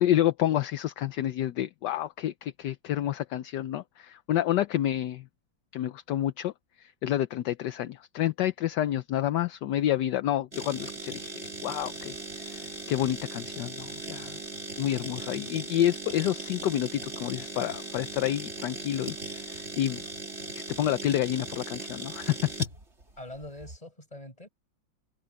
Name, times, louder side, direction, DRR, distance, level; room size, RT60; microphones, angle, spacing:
voice 1, 0.0-5.2 5.7-6.5 6.8-14.4 14.8-20.0 20.5-22.5, left 12 dB, 70° left, 1.3 m, -29 dB
sound 1, 10.5-23.8, right 2 dB, 35° right, 4.0 m, -39 dB
voice 2, 23.2-24.5, left 1 dB, 20° left, 7.2 m, -43 dB
omnidirectional pair, 2.0 m